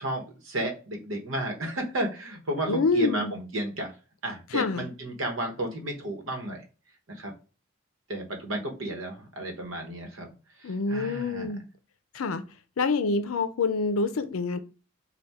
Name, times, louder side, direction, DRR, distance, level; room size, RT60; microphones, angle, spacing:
voice 1, 0.0-3.9 4.2-6.6 7.2-7.3 8.1-10.3 10.6-11.5, right 1 dB, 70° right, 1.0 m, -32 dB
voice 2, 2.7-3.3 4.5-4.9 10.6-11.6 12.1-12.4 12.8-14.6, left 4 dB, 85° left, 0.5 m, -26 dB
4.2 x 2.3 x 3.4 m
head